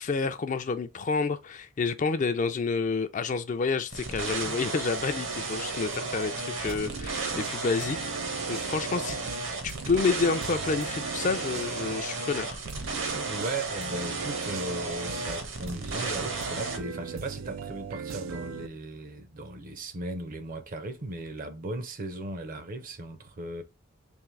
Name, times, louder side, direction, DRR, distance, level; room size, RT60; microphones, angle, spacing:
voice 1, 0.0-8.1 8.5-9.2 9.6-12.6, left 4 dB, 40° left, 0.4 m, -29 dB
sound 1, 3.9-16.8, right 3 dB, 65° right, 1.0 m, -34 dB
sound 2, 6.7-12.0 12.7-18.7, right 6 dB, 85° right, 0.4 m, -40 dB
voice 2, 13.3-23.6, right 2 dB, 45° right, 0.6 m, -37 dB
3.6 x 2.9 x 3.2 m
head